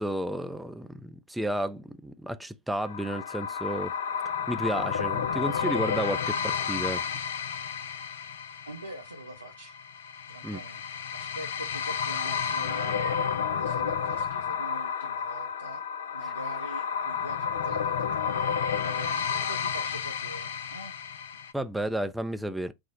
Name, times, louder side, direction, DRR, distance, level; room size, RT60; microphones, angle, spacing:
voice 1, 0.0-3.9 4.5-7.1 10.4-10.6 16.2-16.3 21.5-22.7, right 1 dB, 5° right, 0.4 m, -32 dB
sound 1, 2.8-21.5, left 7 dB, 60° left, 0.4 m, -31 dB
voice 2, 8.6-9.8 10.3-13.2 13.6-15.8 16.1-21.0 21.8-21.9, right 1 dB, 80° right, 0.7 m, -44 dB
3.7 x 2.0 x 4.1 m
figure-of-eight pair, 90°, 0 cm